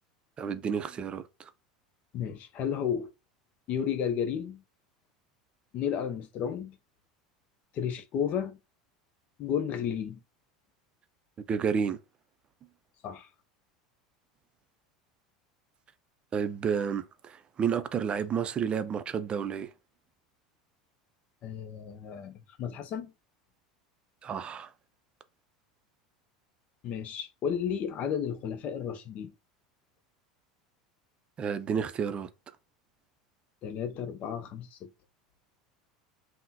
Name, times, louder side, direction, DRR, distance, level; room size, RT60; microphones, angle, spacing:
voice 1, 0.4-1.5 11.5-12.0 16.3-19.7 24.2-24.7 31.4-32.3, right 7 dB, 35° right, 0.4 m, -31 dB
voice 2, 2.1-3.1 3.7-4.6 5.7-6.8 7.7-8.6 9.4-10.2 13.0-13.3 21.4-23.1 26.8-29.3 33.6-34.9, left 8 dB, 50° left, 0.5 m, -33 dB
3.5 x 2.1 x 2.8 m
hypercardioid pair, 85°, 3 cm